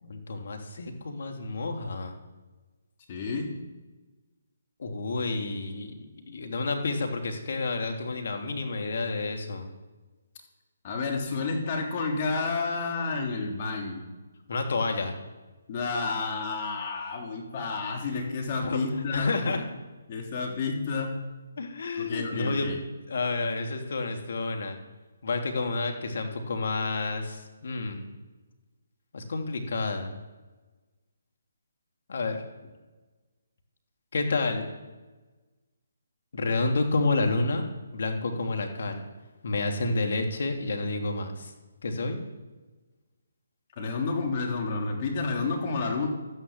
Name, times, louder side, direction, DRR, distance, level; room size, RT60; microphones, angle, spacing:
voice 1, 0.0-2.1 4.8-9.7 14.5-15.1 18.6-18.8 19.1-19.6 21.6-22.7 23.1-24.8 25.2-28.0 29.1-30.1 32.1-32.4 34.1-34.7 36.3-37.6 37.9-39.0 39.4-41.5 41.8-42.2, left 3 dB, 65° left, 3 dB, 2.9 m, -29 dB
voice 2, 3.1-3.5 10.8-14.0 15.7-19.7 20.1-21.1 22.0-22.8 43.8-46.1, left 4 dB, 40° left, 1 dB, 3.2 m, -30 dB
13.0 x 10.5 x 7.4 m, 1.2 s
figure-of-eight pair, 145°, 0 cm